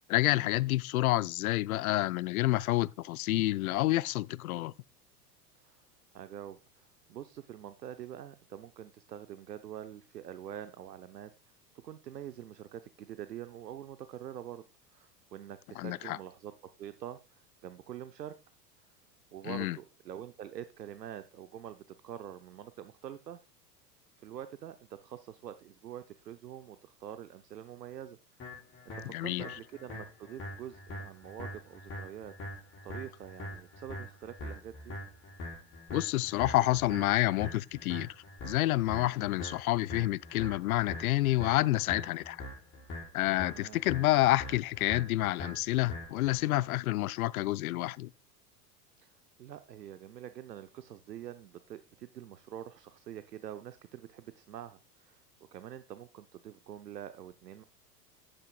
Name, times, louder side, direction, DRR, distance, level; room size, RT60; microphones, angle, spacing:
voice 1, 0.1-4.7 15.8-16.2 19.4-19.8 29.1-29.5 35.9-38.2 38.4-42.4 43.1-48.1, left 17 dB, 65° left, 0.5 m, -29 dB
voice 2, 6.1-11.3 11.8-14.6 14.9-16.5 16.8-18.3 19.3-23.4 24.2-24.8 25.0-28.5 28.9-32.3 32.8-35.0 43.4-43.8 49.0-55.2 55.5-57.6, right 10 dB, 80° right, 0.8 m, -45 dB
sound 1, 28.4-46.4, left 1 dB, 25° left, 4.5 m, -44 dB
10.5 x 9.3 x 2.3 m
figure-of-eight pair, 90°, 48 cm